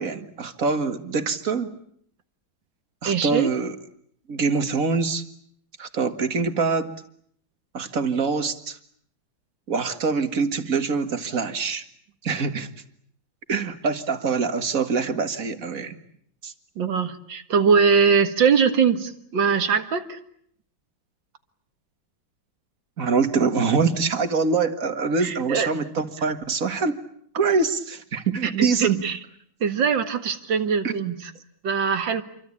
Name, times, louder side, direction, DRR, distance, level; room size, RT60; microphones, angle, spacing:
voice 1, 0.0-1.8 3.0-3.8 4.3-5.2 5.8-6.9 7.7-8.8 9.7-11.8 12.2-12.7 13.5-16.0 16.4-16.5 23.0-27.0 27.3-29.0 30.8-31.0, right 4 dB, 45° right, 9 dB, 2.1 m, -24 dB
voice 2, 3.0-3.5 16.8-20.2 25.2-25.7 28.4-29.2 29.6-31.3 31.6-32.2, right 6 dB, 75° right, 9 dB, 2.4 m, -22 dB
27.5 x 24.0 x 8.6 m, 0.66 s
omnidirectional pair, 2.1 m